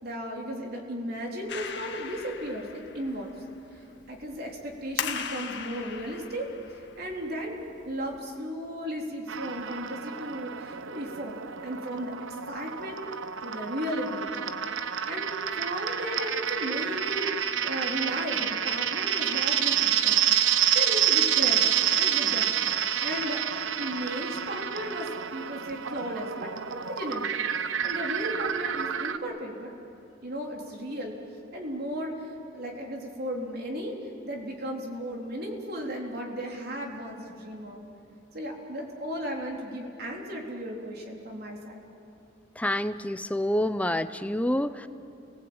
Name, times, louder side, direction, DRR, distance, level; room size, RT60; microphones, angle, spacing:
voice 1, 0.0-3.4 3.7-3.8 4.1-7.6 7.9-11.4 11.6-13.0 13.4-14.3 15.1-15.3 15.6-23.4 23.8-29.7 30.2-31.2 31.5-34.0 34.2-37.8 38.3-41.9, equal, 55° right, 0 dB, 3.7 m, -35 dB
Clapping, 1.5-8.2, left 7 dB, 60° left, 1.7 m, -39 dB
sound 1, 9.3-29.2, right 9 dB, 80° right, 1.0 m, -28 dB
voice 2, 42.5-44.9, left 1 dB, 5° left, 12 dB, 0.7 m, -27 dB
29.0 x 19.5 x 8.8 m, 2.8 s
head